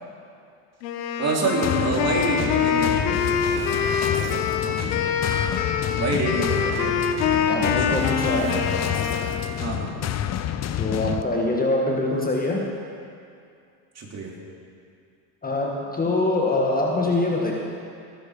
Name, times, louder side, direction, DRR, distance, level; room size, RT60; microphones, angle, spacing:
Wind instrument woodwind instrument, 0.8-9.6, left 6 dB, 90° left, 1.5 m, -25 dB
voice 1, 1.2-3.6 4.6-5.2 5.9-7.2 7.6-8.1 9.5-9.9 13.9-14.3, right 2 dB, 30° right, -2 dB, 3.3 m, -28 dB
sound 1, 1.6-11.2, left 11 dB, 35° left, 0.7 m, -29 dB
voice 2, 7.5-9.0 10.7-12.7 15.4-17.5, left 2 dB, 20° left, -1 dB, 1.7 m, -24 dB
18.5 x 12.0 x 5.0 m, 2.4 s
supercardioid pair, 110°, 49 cm